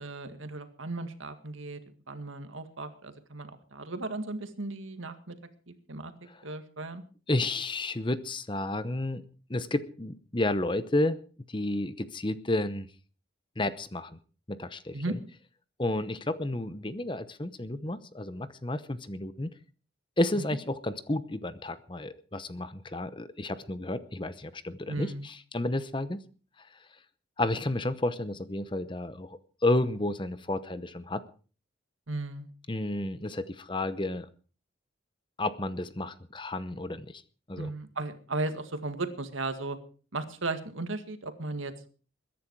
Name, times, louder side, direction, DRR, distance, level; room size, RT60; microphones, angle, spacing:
voice 1, 0.0-1.8 2.1-5.4 5.7-6.1 6.4-7.0 14.9-15.2 20.3-20.4 24.9-25.3 32.1-32.5 37.6-39.8 40.1-41.9, right 2 dB, 85° right, 8 dB, 1.9 m, -36 dB
voice 2, 7.3-9.2 9.5-11.2 11.5-12.9 13.6-14.1 14.5-15.2 15.8-19.5 20.2-26.2 26.6-26.7 27.4-31.2 32.7-34.3 35.4-37.2 37.5-37.7, left 2 dB, 25° left, 13 dB, 0.8 m, -31 dB
21.5 x 10.5 x 4.7 m, 0.40 s
head